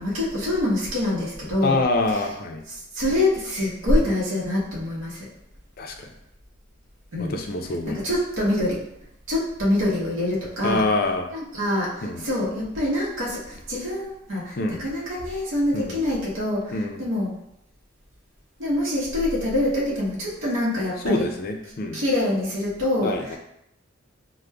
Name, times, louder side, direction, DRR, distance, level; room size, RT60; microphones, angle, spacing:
voice 1, 0.0-1.8 2.1-2.3 2.7-5.3 7.1-7.3 7.9-8.8 9.3-10.8 11.3-17.3 18.6-21.2 21.9-23.4, left 1 dB, 70° right, -6 dB, 0.9 m, -25 dB
voice 2, 1.6-2.6 5.8-6.1 7.2-8.0 10.6-11.3 12.0-12.2 14.6-14.9 15.7-16.0 16.7-17.0 21.0-22.0 23.0-23.4, left 2 dB, 45° left, 3 dB, 0.4 m, -25 dB
5.0 x 2.1 x 2.2 m, 0.79 s
head